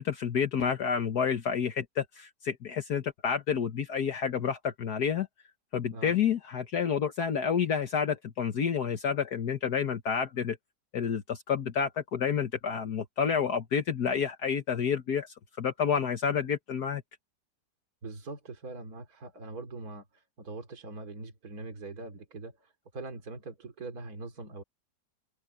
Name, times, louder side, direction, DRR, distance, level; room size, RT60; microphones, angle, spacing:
voice 1, 0.0-5.3 5.7-10.6 10.9-17.0, left 7 dB, 65° left, 1.7 m, -29 dB
voice 2, 18.0-24.6, right 3 dB, 55° right, 3.3 m, -42 dB
open air
omnidirectional pair, 1.9 m